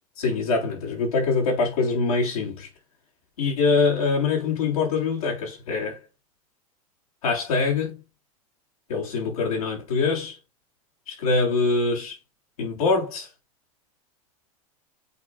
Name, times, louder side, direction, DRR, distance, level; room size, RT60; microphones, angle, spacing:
voice 1, 0.2-2.7 3.4-6.0 7.2-8.0 8.9-10.4 11.1-12.2 12.6-13.3, left 4 dB, 75° left, 3.6 m, -24 dB
8.2 x 4.9 x 2.4 m
hypercardioid pair, 90°, 19 cm